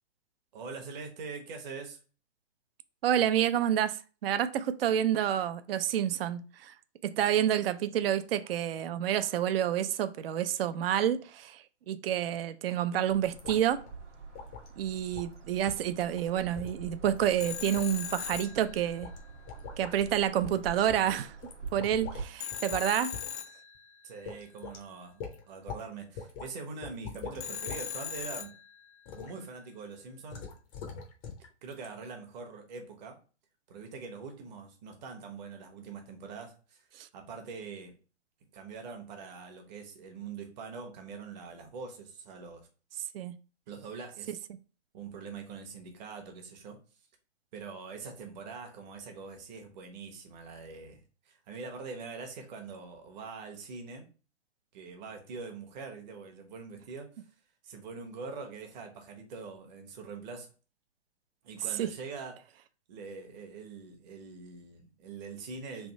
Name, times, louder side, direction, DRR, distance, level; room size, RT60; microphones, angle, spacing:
voice 1, 0.5-2.0 24.0-28.6 29.1-30.5 31.6-33.2 33.7-36.8 37.1-38.0 38.5-42.7 43.7-44.3 44.9-46.8 47.5-54.0 54.7-57.2 57.6-60.5 61.4-62.5 62.9-65.9, right 4 dB, 40° right, 1.0 m, -43 dB
voice 2, 3.0-6.7 7.0-13.8 14.8-19.1 19.8-21.4 21.7-23.2 37.0-37.1 43.1-43.4 61.8-61.9, right 10 dB, 55° right, 0.4 m, -29 dB
sound 1, 13.1-22.3, right 4 dB, 85° right, 1.2 m, -46 dB
sound 2, 13.4-13.6 13.9-14.0 14.3-14.7 15.1-15.3 15.7-15.9 16.1-16.3 16.5-17.4 17.7-18.5 19.0-19.2 19.5-19.9 20.4-20.6 20.9-22.3 22.5-22.9 23.1-23.4 23.7-23.8 24.2-24.8 25.2-25.8 26.1-26.5 26.8-27.8 28.2-28.5 29.0-29.3 30.3-31.5 31.7-31.8, left 6 dB, 20° left, 0.5 m, -43 dB
Telephone, 17.4-19.3 22.4-24.2 27.4-29.1, left 9 dB, 70° left, 0.7 m, -39 dB
3.4 x 2.6 x 4.0 m
hypercardioid pair, 130°, 35 cm